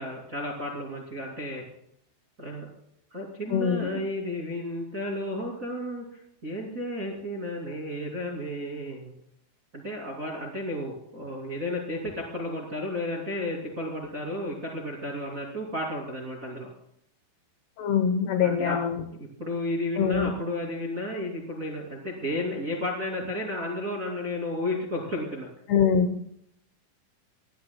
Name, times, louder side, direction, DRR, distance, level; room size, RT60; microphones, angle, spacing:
voice 1, 0.0-1.6 2.4-2.7 3.1-9.1 9.7-16.7 18.4-18.8 19.2-25.5, left 1 dB, 25° right, -1 dB, 2.0 m, -33 dB
voice 2, 3.5-3.9 17.8-19.0 20.0-20.3 25.7-26.2, left 7 dB, 70° left, 7 dB, 2.7 m, -24 dB
24.5 x 18.5 x 2.2 m, 0.73 s
omnidirectional pair, 5.5 m